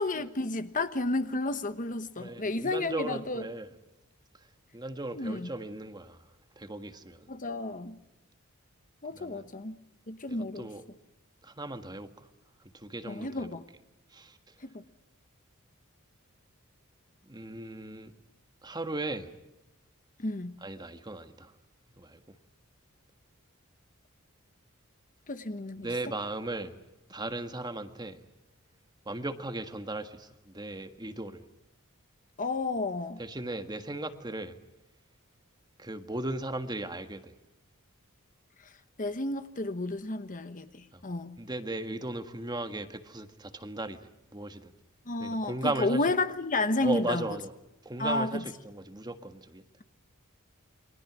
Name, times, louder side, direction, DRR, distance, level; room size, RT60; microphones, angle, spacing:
voice 1, 0.0-3.4 5.1-5.5 7.3-8.0 9.0-9.8 10.1-10.7 13.1-13.6 14.6-14.8 20.2-20.5 25.3-25.9 32.4-33.2 39.0-40.7 41.0-41.4 45.1-47.3 48.0-48.4, left 2 dB, 40° left, 1.2 m, -31 dB
voice 2, 2.2-3.7 4.7-6.2 6.6-7.3 9.1-9.4 10.3-10.8 11.4-12.3 12.7-13.5 14.1-14.4 17.2-18.1 18.6-19.3 20.6-21.5 22.0-22.4 25.8-26.7 27.1-28.2 29.1-31.4 33.2-34.6 35.8-37.3 40.9-41.0 41.4-44.7 45.2-46.1 46.8-47.5 47.9-49.6, right 2 dB, 20° right, 1.6 m, -37 dB
29.0 x 24.0 x 6.2 m
head